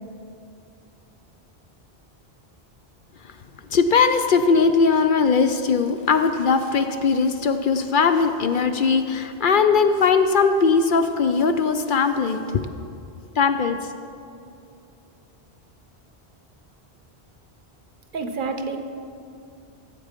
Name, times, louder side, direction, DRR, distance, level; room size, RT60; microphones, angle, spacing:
voice 1, 3.7-12.7 13.4-13.8, left 5 dB, 60° left, 8 dB, 0.6 m, -20 dB
voice 2, 18.1-18.8, right 4 dB, 55° right, 6 dB, 0.9 m, -28 dB
13.5 x 8.0 x 5.1 m, 2.6 s
omnidirectional pair, 1.1 m